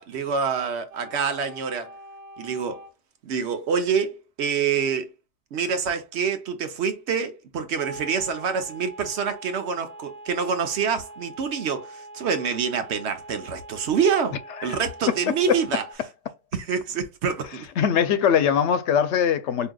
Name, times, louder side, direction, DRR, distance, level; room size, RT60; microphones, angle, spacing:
voice 1, 0.0-1.9 2.4-2.8 3.2-5.1 5.5-14.4 14.6-15.8 16.5-17.7, right 6 dB, 70° right, 1.0 m, -26 dB
sound 1, 0.9-2.9 7.8-15.9, right 1 dB, 40° right, 0.8 m, -43 dB
voice 2, 17.8-19.7, left 8 dB, 80° left, 0.9 m, -21 dB
4.8 x 2.7 x 2.2 m
omnidirectional pair, 1.2 m